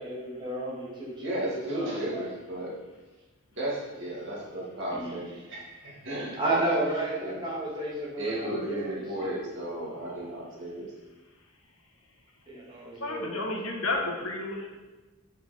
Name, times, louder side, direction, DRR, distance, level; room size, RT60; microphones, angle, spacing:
voice 1, 0.0-2.3 4.9-5.2 6.4-9.4 12.5-13.3, right 1 dB, 20° right, -5 dB, 1.9 m, -32 dB
voice 2, 1.2-2.7 3.5-6.6 7.2-7.4 8.2-10.9, right 1 dB, 55° right, -6 dB, 2.1 m, -34 dB
voice 3, 13.0-14.7, left 2 dB, 65° left, -1 dB, 1.4 m, -31 dB
6.8 x 5.8 x 4.3 m, 1.2 s
head